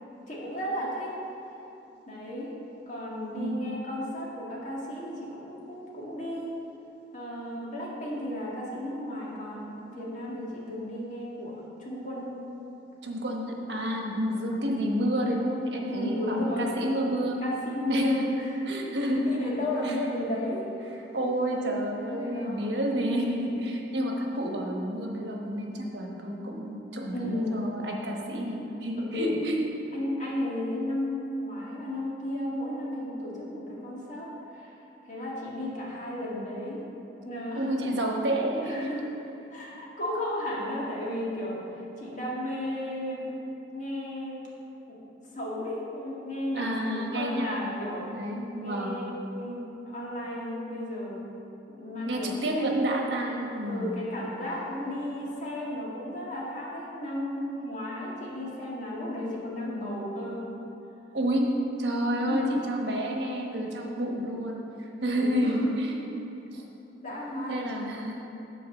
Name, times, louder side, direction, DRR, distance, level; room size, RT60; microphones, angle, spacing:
voice 1, 0.3-1.1 2.1-2.5 2.9-6.6 7.1-12.4 13.7-14.0 15.9-16.8 17.4-18.5 19.3-20.7 22.0-22.6 27.1-27.7 28.9-29.4 29.9-34.7 35.1-36.8 37.2-37.7 38.6-39.0 39.5-41.6 42.0-43.3 43.7-44.4 44.9-45.0 45.3-48.1 48.6-51.3 51.8-52.7 53.6-60.4 62.3-62.6 65.1-65.6 67.0-67.7, left 1 dB, 40° left, -5 dB, 1.8 m, -34 dB
voice 2, 3.3-3.8 13.0-17.4 17.9-18.2 18.7-19.4 19.8-20.0 21.1-29.6 37.5-38.9 46.5-49.0 52.1-54.0 61.1-61.5 61.8-66.0 66.5-66.6 67.5-68.2, equal, 65° right, 0 dB, 1.1 m, -29 dB
8.6 x 4.6 x 7.1 m, 2.9 s
head